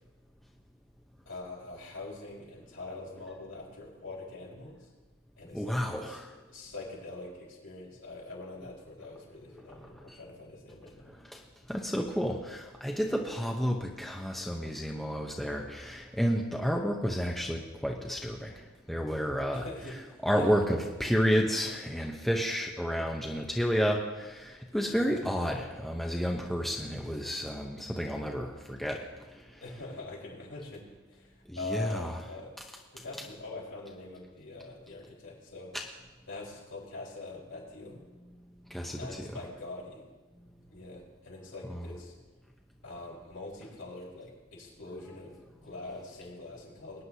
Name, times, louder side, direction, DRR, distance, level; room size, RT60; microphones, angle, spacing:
voice 1, 1.2-4.9 5.4-6.2 6.5-11.1 19.5-20.5 24.9-25.2 29.6-30.8 31.1-32.5 32.9-35.7 36.3-38.0 39.0-40.0 40.7-42.1 42.8-47.0, left 2 dB, 75° left, -4 dB, 4.7 m, -43 dB
voice 2, 5.5-6.4 9.6-10.2 11.1-11.4 11.7-29.0 29.3-29.6 31.5-32.2 35.7-35.8 38.7-39.4 41.6-41.9, equal, ahead, 0 dB, 0.7 m, -31 dB
22.5 x 9.5 x 2.8 m, 1.2 s
head